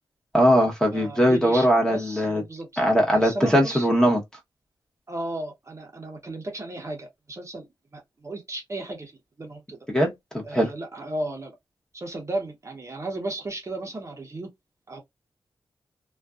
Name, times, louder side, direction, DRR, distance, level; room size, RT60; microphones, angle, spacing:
voice 1, 0.3-2.4 2.8-4.2 9.9-10.7, equal, 5° left, 0.9 m, -20 dB
voice 2, 0.9-2.8 3.1-3.9 5.1-7.7 7.9-9.1 9.4-9.8 10.4-11.6 11.9-14.5 14.9-15.0, right 2 dB, 30° right, 0.7 m, -34 dB
2.5 x 2.2 x 2.3 m
wide cardioid pair, 95°, 9 cm